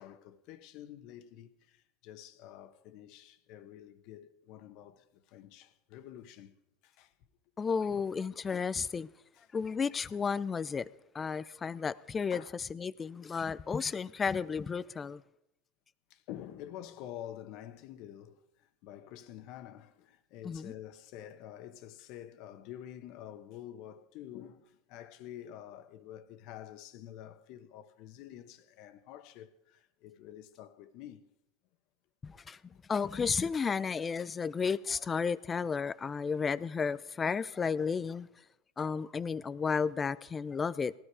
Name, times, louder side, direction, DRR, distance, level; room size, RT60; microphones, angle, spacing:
voice 1, 0.0-6.6 6.8-7.1 7.9-8.0 9.4-9.5 12.3-12.5 16.1-31.2, left 11 dB, 60° left, 1.3 m, -48 dB
voice 2, 7.6-9.1 9.5-15.2 20.4-20.7 32.2-32.6 32.9-38.3 38.8-40.9, left 5 dB, 25° left, 0.6 m, -33 dB
18.5 x 13.0 x 5.0 m
supercardioid pair, 105°, 0 cm